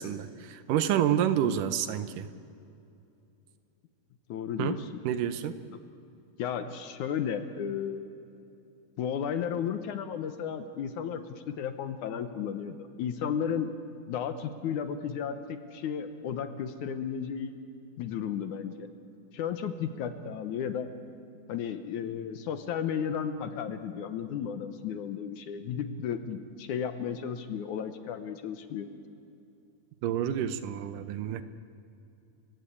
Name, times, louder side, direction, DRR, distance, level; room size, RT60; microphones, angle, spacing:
voice 1, 0.0-2.3 4.6-4.8 5.0-5.5 30.0-31.4, right 10 dB, 75° right, 12 dB, 2.2 m, -28 dB
voice 2, 4.3-5.0 5.7-5.8 6.4-8.1 9.0-11.2 11.5-13.7 14.1-17.5 18.0-18.9 19.3-20.9 21.5-28.9, left 8 dB, 70° left, 9 dB, 2.2 m, -34 dB
30.0 x 16.5 x 8.6 m, 2.7 s
omnidirectional pair, 4.1 m